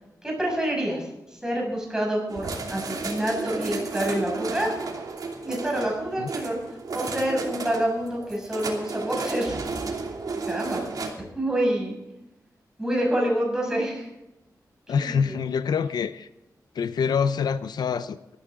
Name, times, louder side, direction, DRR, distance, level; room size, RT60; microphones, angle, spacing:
voice 1, 0.2-4.8 5.4-6.6 6.9-9.6 10.5-11.9 12.8-14.1 15.0-15.4, right 1 dB, 10° right, -2 dB, 6.5 m, -27 dB
sound 1, 2.3-11.1, right 4 dB, 65° right, 2.8 m, -33 dB
voice 2, 14.9-16.3 16.7-18.4, left 6 dB, 85° left, 13 dB, 0.6 m, -26 dB
19.0 x 13.5 x 3.8 m, 0.96 s
wide cardioid pair, 130°, 7 cm